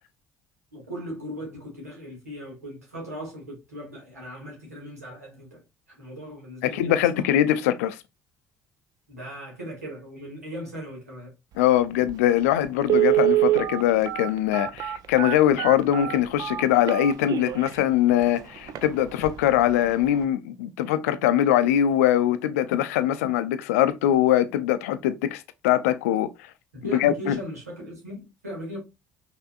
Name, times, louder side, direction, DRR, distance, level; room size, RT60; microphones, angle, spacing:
voice 1, 0.7-5.6 5.9-7.2 9.1-11.3 26.7-28.8, equal, 80° right, 2.1 m, -38 dB
voice 2, 6.6-8.0 11.6-26.3 27.0-27.4, left 11 dB, 70° left, 0.5 m, -22 dB
Telephone, 12.1-12.2 12.8-17.7 18.2-18.3 18.7-18.9 19.2-19.5 19.8-19.9, right 14 dB, 50° right, 0.5 m, -24 dB
5.5 x 3.5 x 2.4 m
figure-of-eight pair, 50°, 8 cm